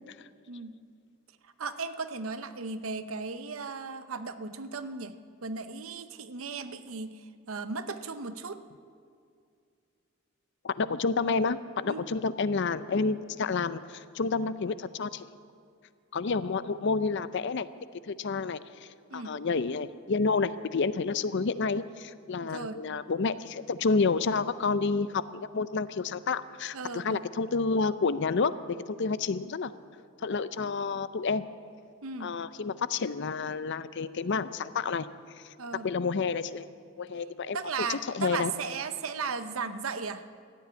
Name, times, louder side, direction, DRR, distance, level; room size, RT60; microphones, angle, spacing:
voice 1, 0.5-0.8 1.6-8.6 11.9-12.0 19.1-19.4 22.4-22.8 26.7-27.2 32.0-32.4 35.6-35.9 37.5-40.2, right 4 dB, 70° right, 11 dB, 0.8 m, -36 dB
voice 2, 10.6-15.3 16.1-17.7 18.0-29.7 30.2-31.4 32.2-35.1 35.3-35.5 35.8-36.7 37.0-37.6 37.9-38.5, left 4 dB, 55° left, 15 dB, 0.5 m, -29 dB
14.0 x 8.5 x 9.5 m, 2.4 s
head